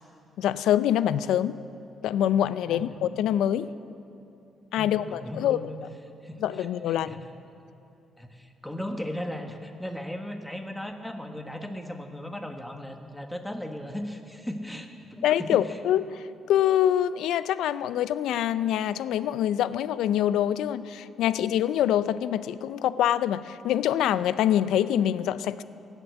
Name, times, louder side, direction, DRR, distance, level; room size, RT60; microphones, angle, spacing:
voice 1, 0.4-1.6 2.0-3.7 4.7-5.6 6.4-7.2 15.2-25.6, left 11 dB, 85° left, 16 dB, 0.4 m, -25 dB
voice 2, 4.8-5.8 6.2-7.3 8.2-15.8, left 1 dB, 5° left, 5 dB, 1.3 m, -37 dB
16.5 x 8.2 x 8.0 m, 2.7 s
cardioid pair, 90°, 0 cm